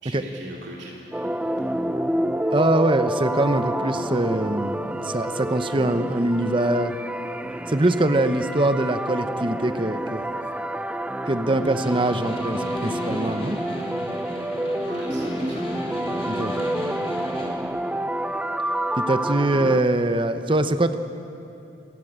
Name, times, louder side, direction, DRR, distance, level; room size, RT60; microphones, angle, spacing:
voice 1, 0.0-1.8 14.9-15.7, right 1 dB, 70° right, -3 dB, 3.2 m, -40 dB
sound 1, 1.1-19.8, right 1 dB, 5° right, 0.6 m, -28 dB
voice 2, 2.5-6.9 7.7-10.3 11.3-13.6 16.3-16.5 19.0-20.9, right 1 dB, 30° right, 10 dB, 0.9 m, -23 dB
Snare drum, 11.5-17.6, equal, 35° left, 4.0 m, -35 dB
28.0 x 14.5 x 8.8 m, 2.7 s
head